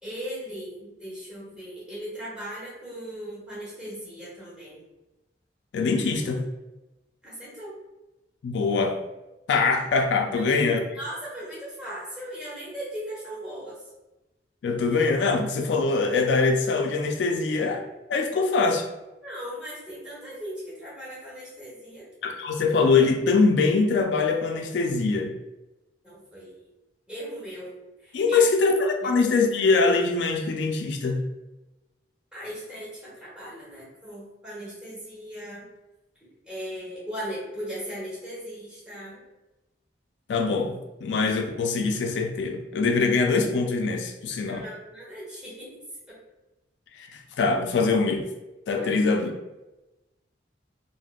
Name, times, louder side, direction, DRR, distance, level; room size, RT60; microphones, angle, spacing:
voice 1, 0.0-4.8 7.2-7.7 10.4-10.5 10.9-13.9 19.2-22.1 26.0-26.6 27.1-27.7 28.0-28.4 29.0-29.1 32.3-35.7 36.2-39.2 44.4-45.7 46.1-46.2 48.8-48.9, equal, 5° right, -8 dB, 1.1 m, -38 dB
voice 2, 5.7-6.5 8.4-9.0 9.5-10.8 14.6-17.8 18.1-18.9 22.2-25.3 28.1-31.3 40.3-44.6 46.9-48.3 48.7-49.3, left 4 dB, 75° left, 3 dB, 0.3 m, -23 dB
3.3 x 2.0 x 2.3 m, 1.0 s
head